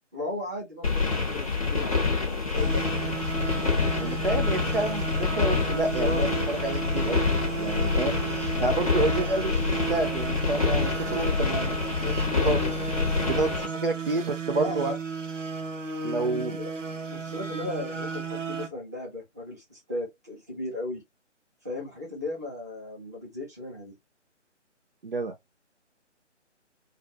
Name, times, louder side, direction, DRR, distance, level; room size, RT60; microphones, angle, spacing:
voice 1, 0.1-3.2 6.0-6.3 7.7-8.0 11.1-11.4 12.0-12.7 14.5-15.0 16.1-16.7 17.1-21.0 21.6-23.9, left 2 dB, 15° right, 0.7 m, -36 dB
sound 1, 0.8-13.7, left 4 dB, 30° left, 0.7 m, -27 dB
sound 2, 2.5-18.7, right 5 dB, 90° right, 0.6 m, -34 dB
voice 2, 4.0-7.3 7.6-8.2 8.6-9.6 9.9-11.8 12.4-12.6 13.2-15.0 16.0-16.6 25.0-25.3, right 3 dB, 50° right, 0.4 m, -29 dB
2.4 x 2.3 x 2.6 m
figure-of-eight pair, 150°, 36 cm